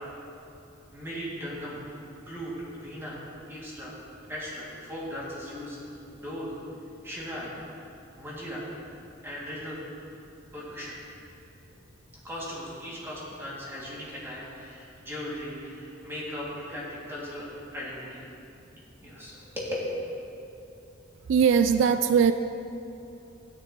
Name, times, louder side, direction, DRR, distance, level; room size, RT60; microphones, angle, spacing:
voice 1, 0.9-1.8 2.3-2.5 2.8-3.2 3.5-3.9 4.3-5.8 6.1-6.5 7.0-7.5 8.2-8.7 9.2-9.8 10.5-11.0 12.2-18.2 19.0-19.8, equal, 15° right, -7 dB, 2.2 m, -38 dB
voice 2, 21.3-22.3, right 6 dB, 75° right, 10 dB, 0.3 m, -20 dB
13.0 x 9.7 x 3.0 m, 2.8 s
head